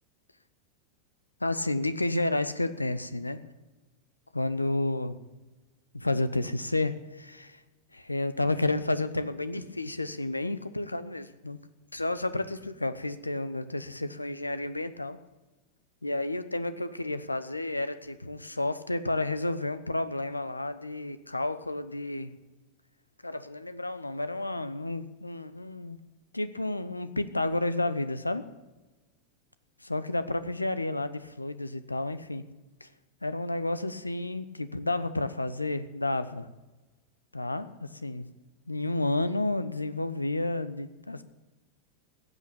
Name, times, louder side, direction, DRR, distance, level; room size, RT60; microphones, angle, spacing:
voice 1, 1.4-3.5 4.3-5.2 5.9-7.6 7.9-11.6 11.9-15.2 16.0-22.3 23.2-26.0 26.3-28.4 29.8-32.4 32.8-32.9 33.2-36.5 37.3-38.3 38.7-41.2, left 2 dB, 85° left, 13 dB, 0.8 m, -31 dB
15.5 x 8.1 x 8.7 m, 1.2 s
figure-of-eight pair, 90°, 0 cm